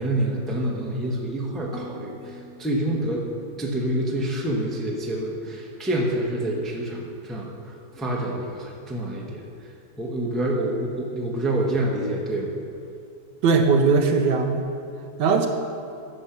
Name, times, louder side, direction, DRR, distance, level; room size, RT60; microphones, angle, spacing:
voice 1, 0.0-3.3 3.6-9.4 10.0-12.5, right 1 dB, ahead, -2 dB, 0.8 m, -27 dB
Harp, 1.7-5.8 6.1-6.7 7.2-7.5, left 2 dB, 60° left, 0.8 m, -48 dB
voice 2, 13.4-14.7 15.2-15.5, right 4 dB, 75° right, 4 dB, 1.4 m, -19 dB
9.7 x 6.8 x 5.9 m, 2.5 s
omnidirectional pair, 2.0 m